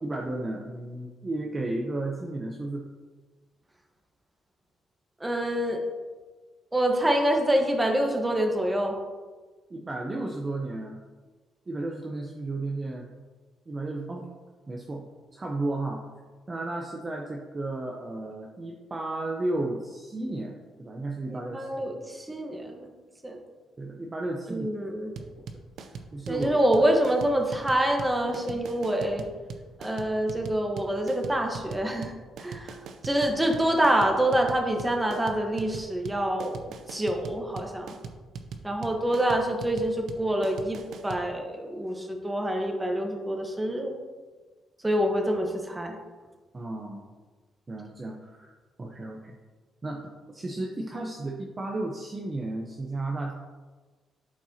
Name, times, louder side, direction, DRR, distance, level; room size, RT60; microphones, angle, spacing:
voice 1, 0.0-2.9 9.7-11.0 11.7-13.1 13.7-14.3 14.7-15.1 15.3-16.0 16.5-22.0 23.8-24.7 25.2-25.5 26.1-26.8 46.5-47.1 47.7-48.5 48.8-49.4 49.8-53.3, right 2 dB, 30° right, 0 dB, 0.8 m, -33 dB
voice 2, 5.2-5.8 6.7-9.0 21.3-22.9 23.2-23.4 24.5-25.1 26.3-29.2 29.8-32.1 32.4-32.8 33.0-36.6 36.9-37.9 38.6-43.9 44.8-46.0, right 1 dB, 15° right, 2 dB, 1.3 m, -26 dB
sound 1, 25.2-41.2, right 5 dB, 75° right, 0.6 m, -40 dB
11.5 x 4.6 x 2.9 m, 1.3 s
cardioid pair, 90°, 0 cm